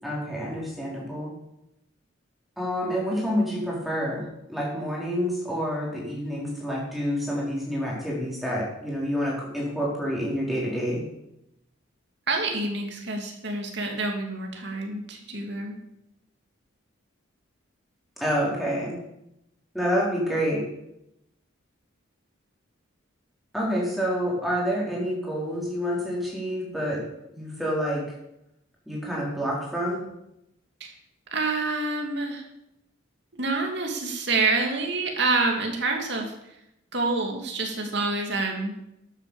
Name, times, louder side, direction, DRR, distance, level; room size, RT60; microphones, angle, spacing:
voice 1, 0.0-1.3 2.6-4.2 4.5-11.0 18.2-19.0 19.7-20.7 23.5-27.0 27.3-28.0 28.9-30.0, equal, ahead, -5 dB, 4.7 m, -28 dB
voice 2, 12.3-15.8 30.8-30.9 31.3-32.4 33.3-36.3 36.9-38.7, right 3 dB, 55° right, 2 dB, 2.7 m, -27 dB
12.5 x 9.0 x 7.2 m, 0.84 s
head